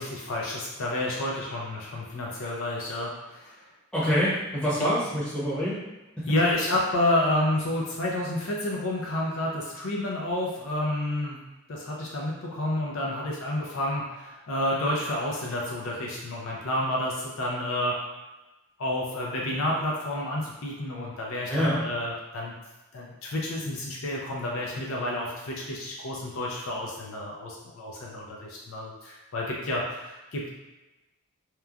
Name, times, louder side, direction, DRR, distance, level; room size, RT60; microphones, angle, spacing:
voice 1, 0.0-3.6 4.8-4.9 6.3-11.4 11.7-18.0 18.8-22.5 22.9-30.5, left 1 dB, 60° left, -3 dB, 0.5 m, -30 dB
voice 2, 3.9-5.8 6.2-6.3 21.5-21.8, equal, 5° left, -10 dB, 0.8 m, -26 dB
3.0 x 2.2 x 2.4 m, 1.1 s
head